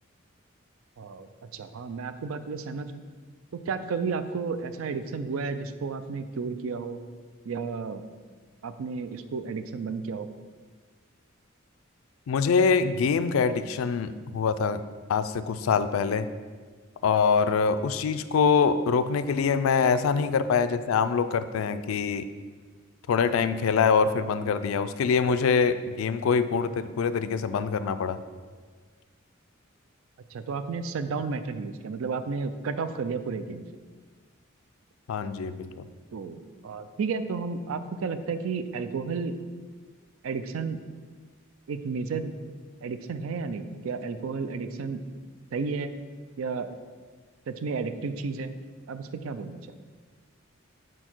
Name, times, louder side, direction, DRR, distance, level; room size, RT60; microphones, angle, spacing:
voice 1, 1.5-3.0 3.7-7.0 7.5-8.0 8.6-10.3 30.3-33.6 36.1-39.4 40.2-40.8 41.7-42.3 42.8-45.0 45.5-45.9 46.4-46.7 47.5-48.6 48.9-49.6, right 4 dB, 85° right, 10 dB, 0.4 m, -32 dB
voice 2, 12.3-14.8 15.1-16.3 17.0-22.3 23.1-28.2 35.1-35.9, left 5 dB, 85° left, 12 dB, 0.4 m, -24 dB
6.1 x 4.5 x 4.4 m, 1.5 s
head